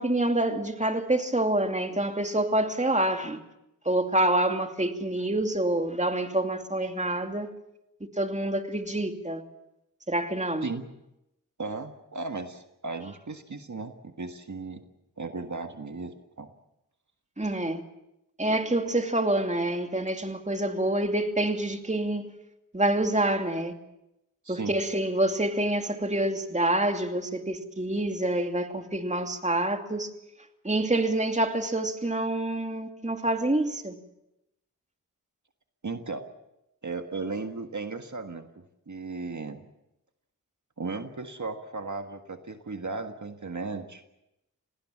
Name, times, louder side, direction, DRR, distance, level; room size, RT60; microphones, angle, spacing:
voice 1, 0.0-3.4 3.9-7.5 8.2-9.4 10.1-10.7 17.4-17.8 18.4-22.3 22.7-23.7 24.5-30.1 30.6-33.9, right 1 dB, 20° right, 2.6 m, -27 dB
voice 2, 11.6-14.8 15.2-16.5 24.4-24.7 35.8-36.3 36.8-39.6 40.8-44.0, right 3 dB, 60° right, 1.7 m, -36 dB
27.0 x 19.0 x 7.4 m
wide cardioid pair, 45°, 32 cm